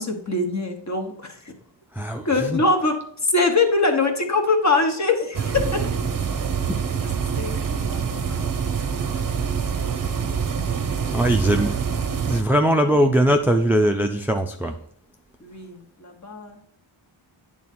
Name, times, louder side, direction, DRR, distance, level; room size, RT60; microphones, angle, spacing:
voice 1, 0.0-1.4 2.2-3.0 3.2-5.6 7.4-8.7 9.0-9.6 11.2-11.7 15.4-16.6, left 3 dB, 35° left, 4 dB, 1.1 m, -24 dB
voice 2, 1.9-2.6 6.7-6.8 11.1-11.8 12.3-14.8, equal, 5° right, 5 dB, 0.4 m, -20 dB
sound 1, 5.3-12.4, right 6 dB, 40° right, 0.7 m, -25 dB
8.7 x 3.7 x 4.3 m, 0.68 s
wide cardioid pair, 85°, 50 cm